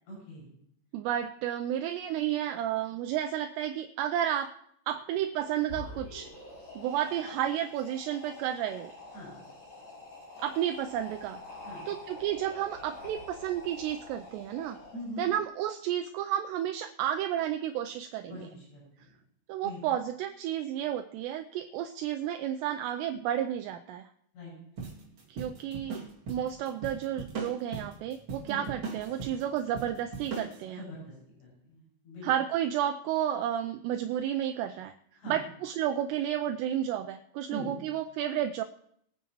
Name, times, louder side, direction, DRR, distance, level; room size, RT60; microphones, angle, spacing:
voice 1, 0.1-0.5 9.1-9.3 11.6-11.8 14.9-15.3 18.3-19.1 19.6-19.8 24.3-24.5 28.4-28.6 30.7-31.1 31.4-32.3 35.2-35.4 37.5-37.7, equal, 80° left, -6 dB, 8.5 m, -42 dB
voice 2, 0.9-4.5 4.9-6.3 6.8-8.9 10.4-11.4 11.9-14.8 15.2-18.5 19.5-24.1 25.3-26.0 26.3-30.8 32.2-34.9 35.3-38.6, right 11 dB, 85° right, 7 dB, 2.4 m, -32 dB
sound 1, 5.6-15.3, left 2 dB, 40° left, 8.2 m, -46 dB
sound 2, 24.8-30.6, right 4 dB, 35° right, 2.3 m, -40 dB
23.0 x 9.4 x 3.0 m, 0.69 s
omnidirectional pair, 5.4 m